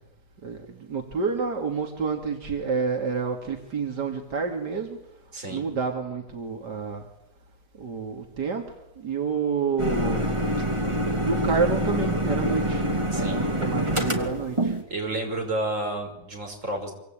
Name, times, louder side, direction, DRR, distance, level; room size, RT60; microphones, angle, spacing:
voice 1, 0.4-5.0 5.5-7.0 7.8-8.6 9.0-10.3 11.2-12.8 13.1-14.7, right 5 dB, 85° right, 3 dB, 3.0 m, -29 dB
voice 2, 5.3-5.6 13.1-13.4 14.9-16.9, right 2 dB, 45° right, 3 dB, 6.3 m, -30 dB
sound 1, 9.8-14.8, right 1 dB, 15° right, 2.8 m, -26 dB
26.0 x 25.5 x 8.9 m, 0.85 s
omnidirectional pair, 1.8 m